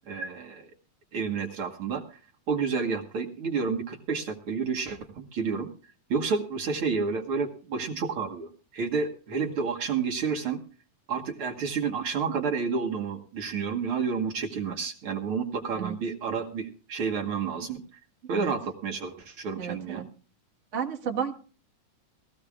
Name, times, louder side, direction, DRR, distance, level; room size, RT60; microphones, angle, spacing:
voice 1, 0.1-0.7 1.1-2.2 2.5-5.7 6.1-10.6 11.1-17.8 18.3-20.0, right 5 dB, 55° right, 3 dB, 1.7 m, -30 dB
voice 2, 19.6-20.0 20.7-21.3, right 7 dB, 35° right, 0 dB, 1.2 m, -32 dB
20.5 x 15.0 x 2.3 m, 0.39 s
omnidirectional pair, 3.8 m